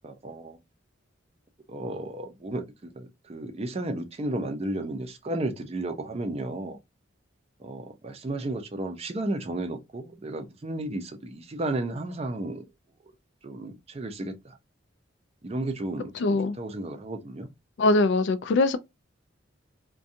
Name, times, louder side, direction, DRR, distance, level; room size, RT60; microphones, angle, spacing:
voice 1, 0.0-0.6 1.7-6.8 7.6-12.7 13.0-13.1 13.4-14.6 15.4-17.5, right 2 dB, 30° right, 0.4 m, -33 dB
voice 2, 16.2-16.6 17.8-18.8, left 2 dB, 65° left, 0.3 m, -22 dB
2.5 x 2.2 x 2.6 m
head